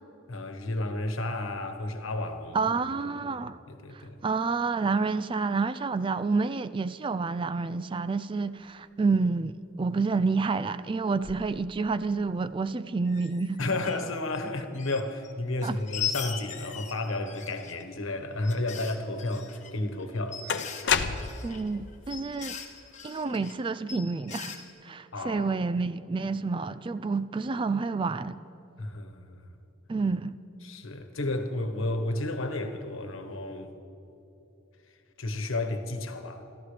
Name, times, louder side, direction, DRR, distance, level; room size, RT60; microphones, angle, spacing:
voice 1, 0.3-2.6 3.3-3.4 3.7-4.2 13.6-20.7 25.1-25.6 28.8-29.4 30.6-33.7 35.2-36.4, left 2 dB, 80° left, 1.3 m, -32 dB
voice 2, 2.5-3.6 3.9-13.6 15.6-15.8 21.4-22.6 23.0-28.4 29.9-30.4, right 4 dB, 25° right, 0.3 m, -29 dB
sound 1, 11.2-11.5 11.9-12.0 12.2-12.3 13.1-14.4 14.7-15.3 15.6-17.8 18.4-23.5 23.9-24.7, left 8 dB, 35° left, 1.3 m, -39 dB
sound 2, 19.5-19.6 20.5-21.6, left 6 dB, 60° left, 0.7 m, -28 dB
27.5 x 14.0 x 3.4 m
head